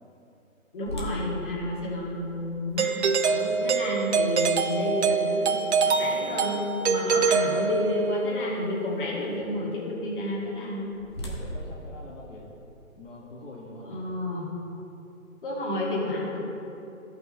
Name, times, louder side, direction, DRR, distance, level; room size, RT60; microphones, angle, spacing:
voice 1, 0.7-2.9 3.2-10.9 13.8-14.5 15.4-16.4, left 1 dB, 40° left, -4 dB, 2.3 m, -30 dB
sound 1, 0.9-6.8 7.4-7.5 8.1-8.3 10.4-13.0, equal, 20° left, 0.7 m, -41 dB
Doorbell, 2.8-8.2, right 5 dB, 55° right, 0.6 m, -25 dB
voice 2, 11.2-12.5 13.0-14.1, left 2 dB, 60° left, -4 dB, 1.7 m, -44 dB
14.0 x 5.6 x 4.3 m, 2.9 s
hypercardioid pair, 155°, 42 cm